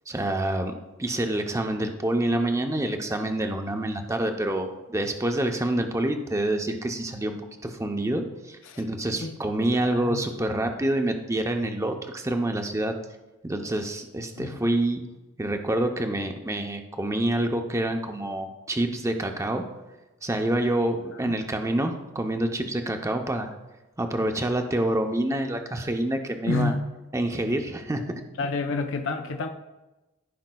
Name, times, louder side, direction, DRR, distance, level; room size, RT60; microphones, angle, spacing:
voice 1, 0.1-0.7 1.0-7.4 7.6-12.9 13.4-15.0 15.4-19.6 20.2-23.5 24.0-26.7 27.1-28.0, right 1 dB, 15° right, 4 dB, 0.6 m, -27 dB
voice 2, 9.7-10.2 14.4-14.6 21.2-21.4 26.5-26.8 28.4-29.5, left 3 dB, 65° left, 5 dB, 0.6 m, -29 dB
14.5 x 5.1 x 2.2 m, 1.1 s
head